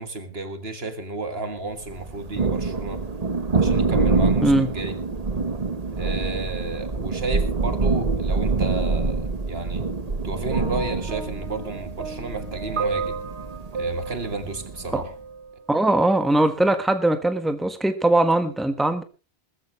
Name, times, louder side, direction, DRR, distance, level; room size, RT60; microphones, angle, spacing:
voice 1, 0.0-3.0 3.5-5.0 6.0-9.9 10.2-13.2 13.7-15.1, right 3 dB, 70° right, 9 dB, 2.1 m, -32 dB
Thunder, 1.9-15.1, right 3 dB, 40° right, 1.3 m, -26 dB
sound 1, 10.5-15.6 16.5-16.7, right 5 dB, 90° right, 1.3 m, -33 dB
voice 2, 15.7-19.0, right 2 dB, ahead, 9 dB, 1.3 m, -20 dB
19.5 x 14.5 x 3.2 m, 0.31 s
omnidirectional pair, 1.1 m